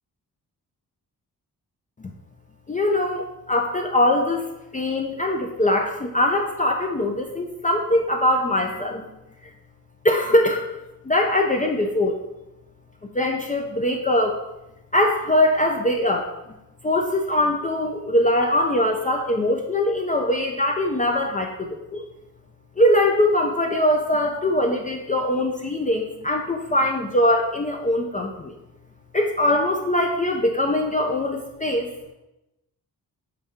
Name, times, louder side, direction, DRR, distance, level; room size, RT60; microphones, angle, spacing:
voice 1, 2.7-4.4 4.7-9.1 10.0-10.7 11.0-12.2 13.1-14.4 14.9-16.3 16.8-22.0 22.8-28.5 29.1-31.9, left 1 dB, 20° left, 2 dB, 0.4 m, -22 dB
5.6 x 2.7 x 3.5 m, 0.93 s
cardioid pair, 70°, 36 cm